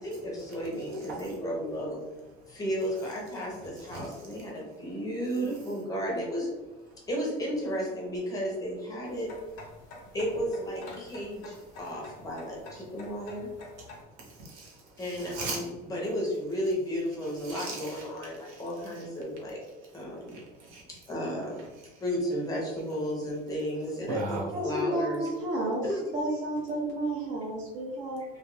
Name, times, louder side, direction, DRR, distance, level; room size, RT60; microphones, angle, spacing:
voice 1, 0.0-2.0 2.5-6.5 7.1-9.3 10.1-13.5 15.0-19.6 19.9-20.4 20.9-21.6 22.0-25.3 25.8-26.0, equal, 20° left, -2 dB, 0.6 m, -33 dB
sound 1, 9.0-14.0, left 2 dB, 60° left, 0.6 m, -48 dB
voice 2, 13.8-15.6 17.4-18.0 18.4-18.6 20.3-20.8 24.1-24.5, right 3 dB, 80° right, -3 dB, 0.9 m, -39 dB
voice 3, 24.5-25.9 26.1-28.2, right 1 dB, 40° right, -3 dB, 0.5 m, -31 dB
2.3 x 2.2 x 3.1 m, 1.1 s
cardioid pair, 160°, 19 cm